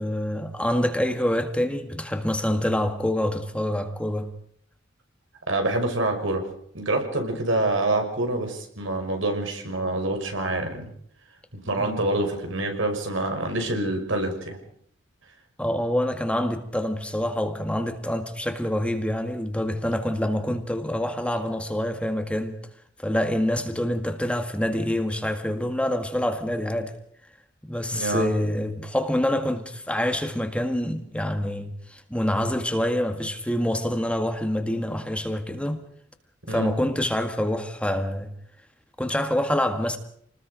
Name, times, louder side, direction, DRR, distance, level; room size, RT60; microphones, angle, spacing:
voice 1, 0.0-4.3 11.8-12.1 15.6-22.6 23.0-26.9 27.6-35.8 36.5-38.3 39.0-40.0, left 1 dB, 5° left, 1.8 m, -26 dB
voice 2, 5.5-6.5 6.7-10.9 11.7-14.6 27.9-28.3 36.5-36.7, right 2 dB, 85° right, 5.7 m, -26 dB
28.5 x 20.5 x 5.1 m
head